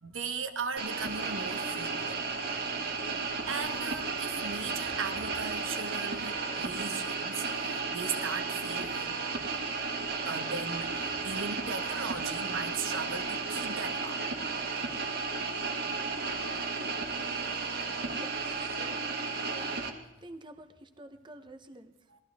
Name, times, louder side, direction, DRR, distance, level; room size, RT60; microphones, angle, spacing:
voice 1, 0.0-2.2 3.5-9.2 10.2-14.2 22.1-22.2, right 5 dB, 85° right, 7 dB, 1.3 m, -38 dB
sound 1, 0.8-19.9, right 4 dB, 55° right, 1.5 m, -34 dB
voice 2, 18.1-19.1 19.4-19.8 20.2-21.9, right 1 dB, 25° right, 8 dB, 0.9 m, -49 dB
19.5 x 13.5 x 3.5 m, 0.99 s
head